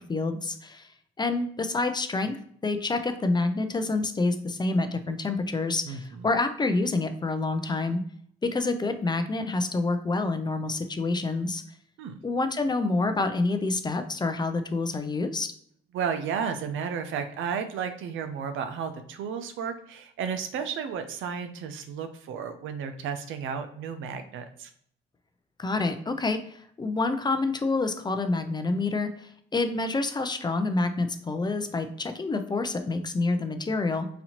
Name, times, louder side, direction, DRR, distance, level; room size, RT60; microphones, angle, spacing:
voice 1, 0.1-0.9 1.2-8.0 8.4-11.6 12.2-15.5 25.6-34.1, left 3 dB, 20° left, 8 dB, 0.4 m, -27 dB
voice 2, 5.9-6.2 12.0-12.2 15.9-24.7, right 7 dB, 80° right, 8 dB, 0.5 m, -33 dB
4.0 x 2.7 x 2.9 m, 0.65 s
cardioid pair, 90°, 20 cm